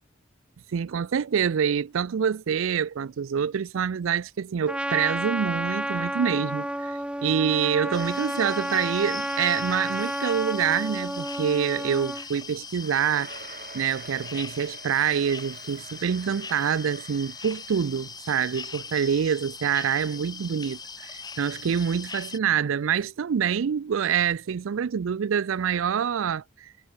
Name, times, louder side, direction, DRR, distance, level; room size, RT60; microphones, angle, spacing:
voice 1, 0.7-13.3 13.7-26.7, right 7 dB, 80° right, 0.4 m, -26 dB
Trumpet, 4.7-12.3, right 1 dB, 5° right, 1.7 m, -31 dB
sound 1, 7.9-22.4, left 5 dB, 20° left, 2.7 m, -40 dB
sound 2, 12.7-18.1, right 5 dB, 40° right, 2.0 m, -47 dB
head